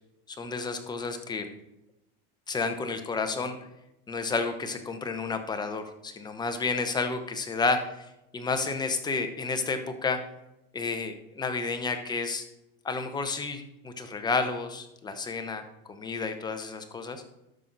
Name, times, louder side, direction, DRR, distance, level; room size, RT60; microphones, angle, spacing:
voice 1, 0.4-1.5 2.5-3.6 4.1-7.9 8.3-10.2 10.7-12.4 12.8-17.2, left 4 dB, 15° left, 7 dB, 1.0 m, -31 dB
12.5 x 5.7 x 4.0 m, 0.89 s
supercardioid pair, 130°, 30 cm